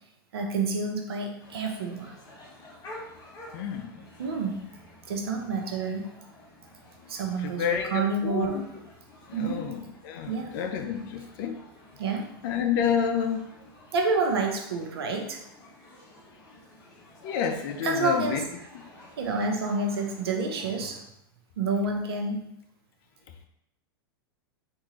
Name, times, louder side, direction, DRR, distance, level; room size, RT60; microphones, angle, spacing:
voice 1, 0.3-2.1 4.2-4.6 5.1-6.1 7.1-8.7 9.3-9.6 10.3-10.5 12.0-12.3 13.9-15.4 17.8-18.4 19.2-21.0 21.6-22.5, right 3 dB, 85° right, 2 dB, 0.7 m, -28 dB
sound 1, 1.4-21.0, left 1 dB, 30° left, 1.1 m, -51 dB
voice 2, 3.5-4.0 7.4-8.6 9.3-11.6 12.4-13.5 17.2-18.4, left 7 dB, 60° left, 6 dB, 0.5 m, -29 dB
3.6 x 2.6 x 3.1 m, 0.77 s
hypercardioid pair, 120°, 13 cm